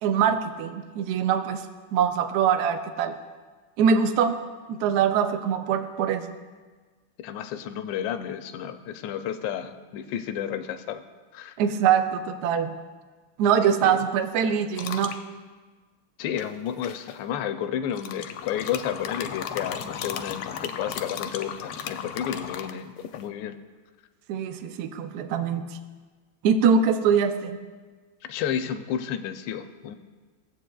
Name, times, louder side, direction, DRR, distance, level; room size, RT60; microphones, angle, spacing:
voice 1, 0.0-1.7 1.9-3.2 3.8-4.4 4.7-6.3 11.6-12.8 13.4-15.1 24.3-25.7 26.4-27.6, right 7 dB, 75° right, 9 dB, 0.9 m, -23 dB
voice 2, 7.2-11.0 11.3-11.6 13.8-14.0 16.2-23.6 28.2-30.0, left 9 dB, 75° left, 8 dB, 1.1 m, -31 dB
sound 1, 14.8-15.2 16.4-17.1 17.9-23.3, left 8 dB, 90° left, 1.5 m, -35 dB
16.0 x 7.7 x 2.3 m, 1.4 s
omnidirectional pair, 2.3 m